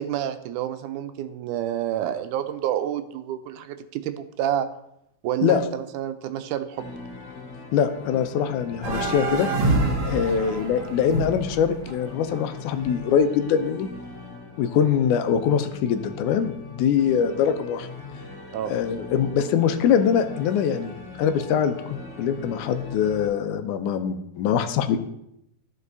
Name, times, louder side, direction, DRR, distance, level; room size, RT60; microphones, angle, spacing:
voice 1, 0.0-4.7 5.2-6.9 18.5-18.8, right 11 dB, 90° right, 10 dB, 2.1 m, -28 dB
sound 1, 6.8-23.3, left 3 dB, 35° left, 2.5 m, -41 dB
voice 2, 7.7-9.5 10.0-13.9 14.6-17.9 18.7-25.0, left 8 dB, 85° left, 9 dB, 2.1 m, -23 dB
sound 2, 8.8-13.1, right 2 dB, 50° right, 2.3 m, -27 dB
14.0 x 5.3 x 2.7 m, 0.80 s
omnidirectional pair, 3.5 m